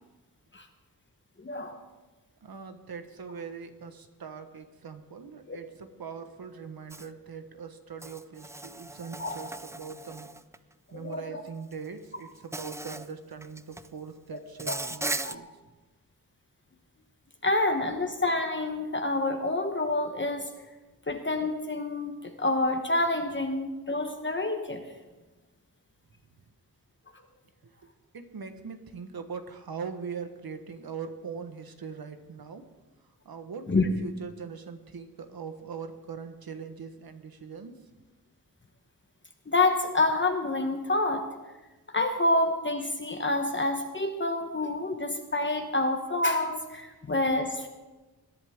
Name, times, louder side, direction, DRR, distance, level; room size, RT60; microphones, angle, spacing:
voice 1, 1.4-1.8 5.5-5.6 9.2-9.3 10.9-11.4 14.7-14.8 15.2-15.4 17.4-20.5 21.1-24.8 33.7-33.9 39.5-41.3 41.9-47.7, left 2 dB, 30° left, 4 dB, 1.1 m, -28 dB
voice 2, 2.4-10.3 10.9-15.5 27.6-32.6 33.2-37.7, right 6 dB, 80° right, 7 dB, 1.3 m, -41 dB
Insect, 6.9-7.1 8.0-10.6 11.7-11.9 12.5-13.1 13.4-13.9 14.6-15.4, right 2 dB, 10° right, 0.3 m, -37 dB
21.0 x 11.0 x 3.6 m, 1.2 s
wide cardioid pair, 125°, 36 cm